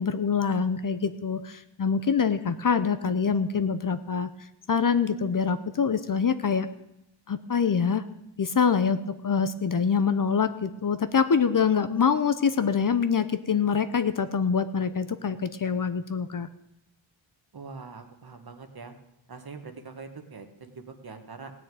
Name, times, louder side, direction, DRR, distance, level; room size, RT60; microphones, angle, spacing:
voice 1, 0.0-4.3 4.7-6.7 7.3-8.0 8.4-16.5, left 6 dB, 40° left, 11 dB, 0.7 m, -25 dB
voice 2, 17.5-18.9 19.3-21.5, right 4 dB, 50° right, 6 dB, 1.6 m, -43 dB
16.5 x 6.5 x 9.1 m, 0.87 s
wide cardioid pair, 135°, 48 cm